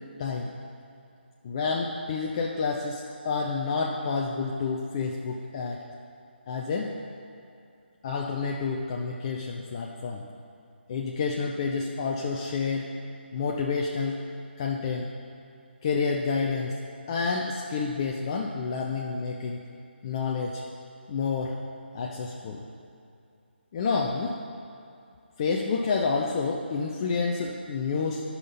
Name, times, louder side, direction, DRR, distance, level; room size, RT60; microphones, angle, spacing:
voice 1, 0.2-0.5 1.4-5.8 6.5-6.9 8.0-10.2 10.9-12.9 13.3-14.2 14.6-15.1 15.8-16.7 17.1-19.6 20.0-20.6 21.1-21.6 21.9-22.7 23.7-24.4 25.4-28.2, left 4 dB, 25° left, -1 dB, 0.5 m, -29 dB
11.5 x 5.6 x 4.0 m, 2.5 s
figure-of-eight pair, 160°, 6 cm